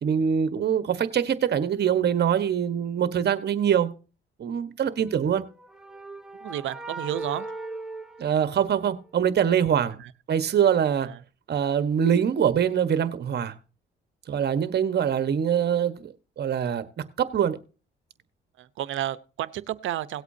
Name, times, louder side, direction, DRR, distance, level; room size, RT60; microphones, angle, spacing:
voice 1, 0.0-3.9 4.4-5.4 8.2-10.0 10.3-11.1 11.5-13.5 14.3-16.8 17.2-17.6, right 8 dB, 55° right, 1.3 m, -24 dB
sound 1, 5.2-9.1, right 2 dB, 5° right, 1.2 m, -39 dB
voice 2, 6.4-7.5 10.0-10.1 11.0-11.2 18.6-20.2, right 12 dB, 75° right, 0.9 m, -31 dB
18.0 x 8.2 x 2.8 m
cardioid pair, 90°, 20 cm